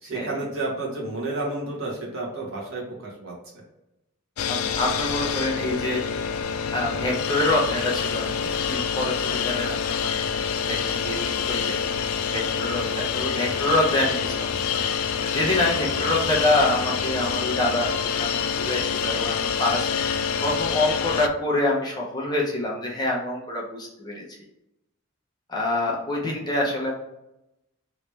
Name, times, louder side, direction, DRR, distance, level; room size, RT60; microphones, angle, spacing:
voice 1, 0.0-3.3, right 2 dB, 70° right, -3 dB, 1.3 m, -31 dB
sound 1, 4.4-21.3, left 7 dB, 80° left, 0.3 m, -27 dB
voice 2, 4.5-6.0 6.7-10.2 10.7-14.6 15.2-24.2 25.5-26.9, left 1 dB, 20° left, -3 dB, 0.7 m, -26 dB
3.2 x 3.0 x 3.3 m, 0.89 s
head